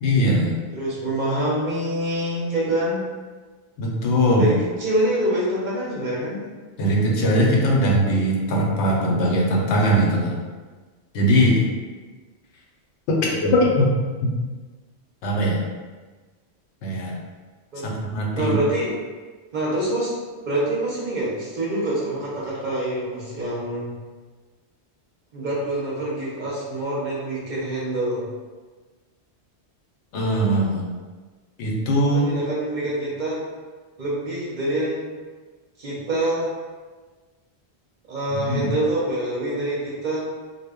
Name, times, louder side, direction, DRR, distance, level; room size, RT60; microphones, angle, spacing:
voice 1, 0.0-0.6 3.8-4.5 6.8-10.3 11.1-11.6 13.1-13.9 14.2-14.3 15.2-15.6 16.8-17.2 17.8-18.6 30.1-30.9 31.6-32.3 38.3-38.7, equal, 80° left, -2 dB, 0.9 m, -20 dB
voice 2, 0.7-3.0 4.4-6.4 17.7-17.9 18.3-18.9 19.5-20.1 20.4-23.9 25.3-28.3 31.9-33.4 34.0-35.1 35.8-36.5 38.1-40.3, right 1 dB, 50° right, -6 dB, 0.6 m, -25 dB
2.1 x 2.0 x 3.5 m, 1.4 s
omnidirectional pair, 1.1 m